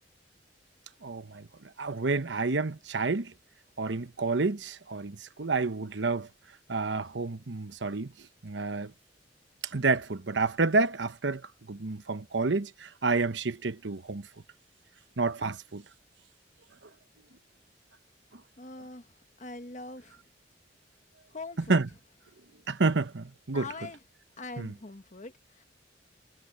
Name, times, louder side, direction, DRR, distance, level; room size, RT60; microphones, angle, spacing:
voice 1, 1.0-1.5 1.8-3.3 3.8-6.3 6.7-8.1 8.4-8.9 9.7-11.4 11.7-14.3 15.2-15.8 21.7-21.9 22.7-23.7 24.6-24.7, right 3 dB, 85° right, 1.0 m, -29 dB
voice 2, 18.6-19.1 19.4-20.2 21.3-21.8 23.5-24.0 24.4-25.6, left 3 dB, 40° left, 1.6 m, -42 dB
head